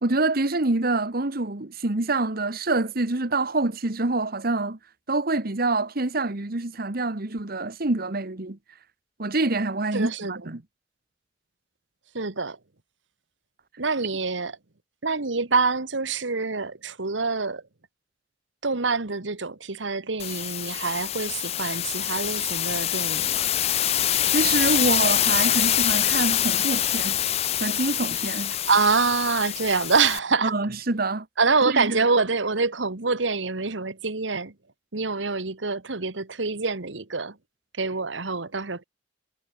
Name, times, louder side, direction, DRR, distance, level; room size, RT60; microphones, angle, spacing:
voice 1, 0.0-4.8 5.1-8.6 9.2-10.6 24.3-27.2 27.6-28.5 30.4-31.3 31.7-32.0, right 2 dB, 55° right, 1.4 m, -26 dB
voice 2, 9.9-10.5 12.1-12.6 13.8-14.5 15.0-17.6 18.6-23.5 28.7-30.5 31.4-34.5 34.9-37.3 37.8-38.8, right 4 dB, 80° right, 1.6 m, -26 dB
sound 1, 20.2-30.2, left 12 dB, 35° left, 0.4 m, -25 dB
head